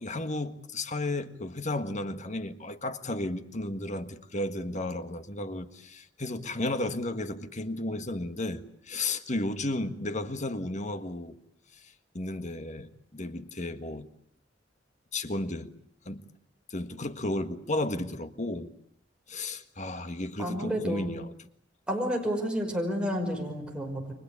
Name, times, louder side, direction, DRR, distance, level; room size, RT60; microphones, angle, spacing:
voice 1, 0.0-11.4 11.7-14.1 15.1-15.7 16.0-16.2 16.7-18.7 19.3-21.3, left 2 dB, 40° left, 1.6 m, -33 dB
voice 2, 20.4-21.1 21.9-24.1, equal, 5° right, 5.7 m, -30 dB
30.0 x 23.5 x 8.4 m
head